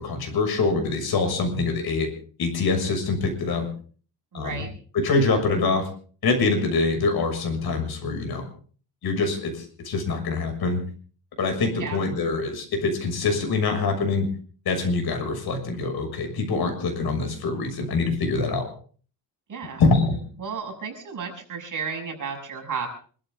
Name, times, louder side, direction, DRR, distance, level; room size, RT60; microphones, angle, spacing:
voice 1, 0.0-2.1 2.4-3.7 4.3-4.6 4.9-5.9 6.2-8.5 9.0-10.8 11.4-14.3 14.6-18.7 19.8-20.2, left 3 dB, 60° left, 5 dB, 6.5 m, -24 dB
voice 2, 4.3-4.7 11.8-12.0 19.5-19.8 20.4-22.9, right 6 dB, 45° right, 3 dB, 6.7 m, -33 dB
26.5 x 13.5 x 3.8 m, 0.43 s
cardioid pair, 140°, 42 cm